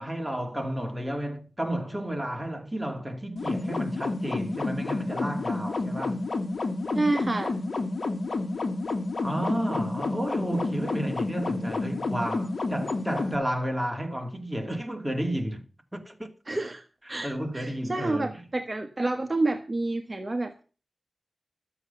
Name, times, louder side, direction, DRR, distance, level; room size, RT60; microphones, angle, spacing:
voice 1, 0.0-6.3 9.2-15.6 15.9-16.3 17.2-18.4, right 1 dB, 5° right, 2.5 m, -32 dB
sound 1, 3.4-13.4, left 3 dB, 60° left, 1.9 m, -30 dB
voice 2, 6.9-7.5 16.5-20.5, right 2 dB, 30° right, 1.2 m, -29 dB
12.5 x 8.0 x 6.9 m
wide cardioid pair, 95°, 0 cm